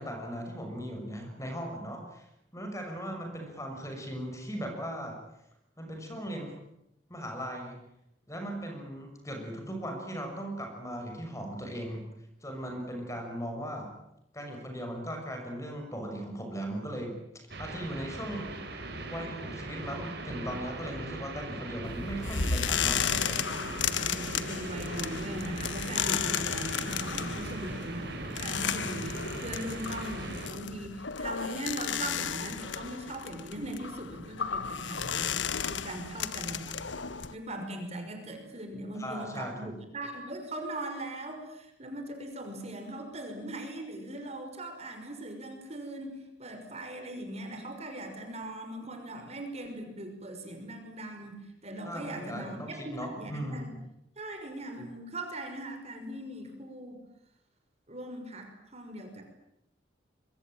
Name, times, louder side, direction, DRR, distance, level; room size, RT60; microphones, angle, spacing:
voice 1, 0.0-2.3 2.5-5.2 5.8-6.6 7.1-7.8 8.3-12.1 12.4-13.9 14.3-17.2 17.6-18.5 19.1-23.5 38.9-39.8 51.8-53.7, equal, 15° left, 3 dB, 6.4 m, -38 dB
sound 1, 17.5-30.5, right 2 dB, 60° right, 5.3 m, -39 dB
sound 2, 21.8-37.3, left 7 dB, 75° left, 1.3 m, -34 dB
voice 2, 24.1-35.3 35.7-36.8 37.3-53.7 54.2-57.0 57.9-59.2, right 1 dB, 35° right, 5 dB, 5.9 m, -40 dB
26.5 x 23.5 x 9.1 m, 0.82 s
head